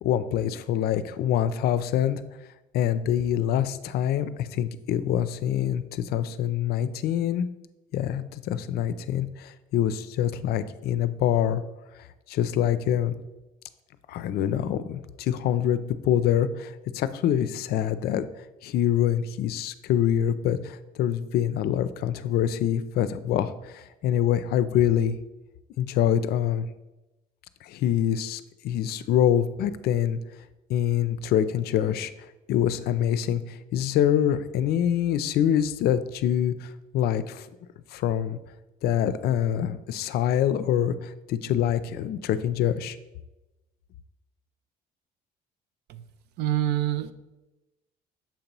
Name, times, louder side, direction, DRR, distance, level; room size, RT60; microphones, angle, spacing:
voice 1, 0.0-2.2 2.7-7.5 7.9-11.6 12.3-13.1 14.1-18.3 18.6-25.2 25.8-26.7 27.6-30.2 30.7-32.1 32.5-37.5 37.9-38.4 38.8-43.0, left 10 dB, 70° left, 13 dB, 0.4 m, -25 dB
voice 2, 46.4-47.1, right 12 dB, 80° right, 12 dB, 0.5 m, -26 dB
7.2 x 2.9 x 5.3 m, 1.0 s
cardioid pair, 110°, 17 cm